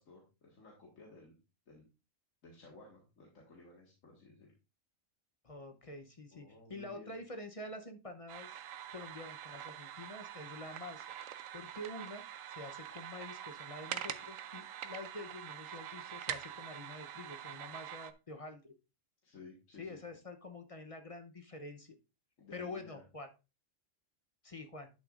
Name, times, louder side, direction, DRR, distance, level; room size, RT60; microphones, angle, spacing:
voice 1, 0.0-1.4 1.7-1.9 2.4-4.5 6.3-7.2 19.2-20.0 22.4-23.0, left 3 dB, 85° left, -2 dB, 2.2 m, -56 dB
voice 2, 5.4-8.6 8.9-11.0 11.5-18.7 19.8-22.0 22.5-23.3 24.4-24.9, left 2 dB, 30° left, 6 dB, 0.8 m, -47 dB
sound 1, 8.3-18.1, right 10 dB, 85° right, 1.0 m, -45 dB
11.5 x 6.5 x 2.5 m, 0.29 s
omnidirectional pair, 1.3 m